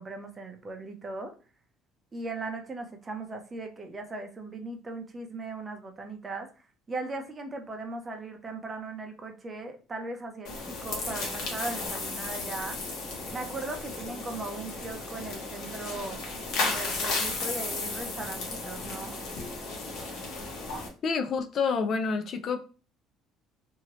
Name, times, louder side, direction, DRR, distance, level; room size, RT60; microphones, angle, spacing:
voice 1, 0.0-1.3 2.1-6.5 6.9-12.8 13.3-16.2 16.6-19.2, right 3 dB, 20° right, 0.6 m, -38 dB
sound 1, 10.4-20.9, left 3 dB, 70° left, 1.1 m, -34 dB
voice 2, 21.0-22.7, left 5 dB, 45° left, 0.3 m, -28 dB
2.8 x 2.7 x 3.0 m
cardioid pair, 130°, 0 cm